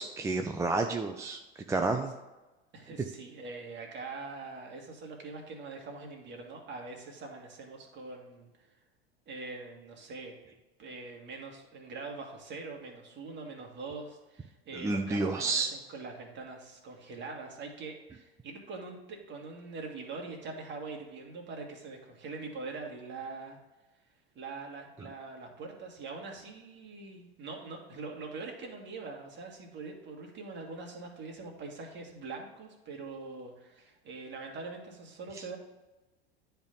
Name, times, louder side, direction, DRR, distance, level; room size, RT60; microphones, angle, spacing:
voice 1, 0.0-1.4 1.7-2.1 14.7-15.7, right 3 dB, 10° right, 4 dB, 0.4 m, -30 dB
voice 2, 2.7-8.7 9.3-10.3 10.8-23.6 24.3-35.6, right 3 dB, 35° right, 1 dB, 1.9 m, -43 dB
10.0 x 3.5 x 5.3 m, 1.1 s
hypercardioid pair, 85°, 32 cm